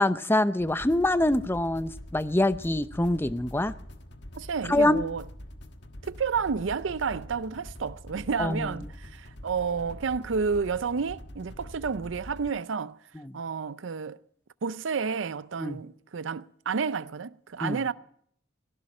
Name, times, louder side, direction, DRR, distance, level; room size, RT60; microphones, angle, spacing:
voice 1, 0.0-3.7 4.7-5.1 8.4-8.9 13.1-13.4 15.6-15.8 17.6-17.8, left 1 dB, 10° left, 0.6 m, -25 dB
sound 1, 0.6-12.5, left 1 dB, 60° left, 1.6 m, -45 dB
voice 2, 4.3-5.2 6.0-13.0 13.3-14.2 14.6-17.9, right 5 dB, 70° right, 0.5 m, -30 dB
18.5 x 16.5 x 4.3 m
head